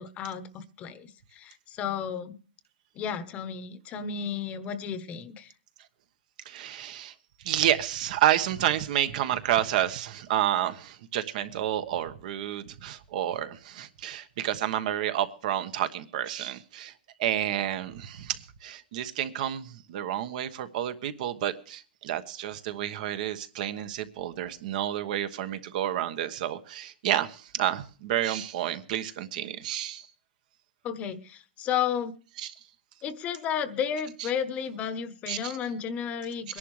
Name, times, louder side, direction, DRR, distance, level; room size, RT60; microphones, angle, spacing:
voice 1, 0.0-2.4 2.9-5.5 30.8-32.1 33.0-36.6, left 8 dB, 25° left, 13 dB, 1.0 m, -33 dB
voice 2, 6.4-7.1 7.4-16.9 17.2-30.1 32.4-32.5 34.2-34.3 35.3-35.6 36.5-36.6, right 11 dB, 55° right, 11 dB, 1.2 m, -30 dB
22.5 x 11.0 x 3.2 m, 0.38 s
supercardioid pair, 155°, 5 cm